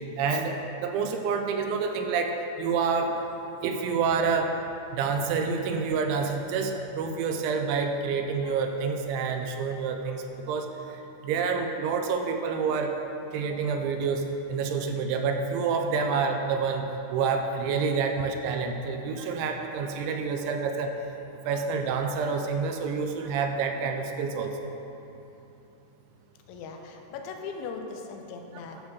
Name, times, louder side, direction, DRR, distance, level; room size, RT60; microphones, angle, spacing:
voice 1, 0.2-3.1 3.6-4.5 4.9-10.7 11.2-12.9 13.3-14.2 14.5-16.8 17.1-20.9 21.5-24.7, right 5 dB, 80° right, 5 dB, 2.9 m, -28 dB
voice 2, 26.5-28.8, left 4 dB, 85° left, 3 dB, 3.0 m, -39 dB
11.0 x 4.8 x 6.9 m, 2.9 s
omnidirectional pair, 5.5 m